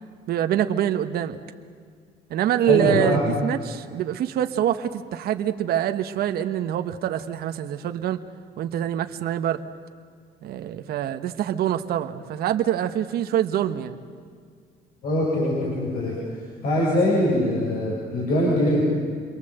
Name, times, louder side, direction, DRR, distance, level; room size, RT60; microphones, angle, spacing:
voice 1, 0.3-1.4 2.3-8.2 8.6-9.6 10.4-14.0, right 11 dB, 65° right, 8 dB, 1.2 m, -25 dB
voice 2, 2.7-3.3 15.0-16.1 16.6-18.8, left 1 dB, 65° left, -5 dB, 8.0 m, -22 dB
28.5 x 22.5 x 8.0 m, 2.1 s
cardioid pair, 110°, 17 cm